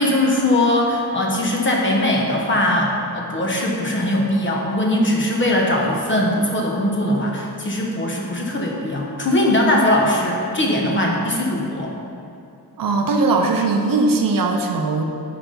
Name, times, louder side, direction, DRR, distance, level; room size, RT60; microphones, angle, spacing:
voice 1, 0.0-11.9, left 1 dB, 30° left, -2 dB, 0.9 m, -20 dB
voice 2, 12.8-15.0, right 3 dB, 55° right, 3 dB, 0.6 m, -19 dB
5.7 x 5.0 x 5.5 m, 2.7 s
wide cardioid pair, 170°, 40 cm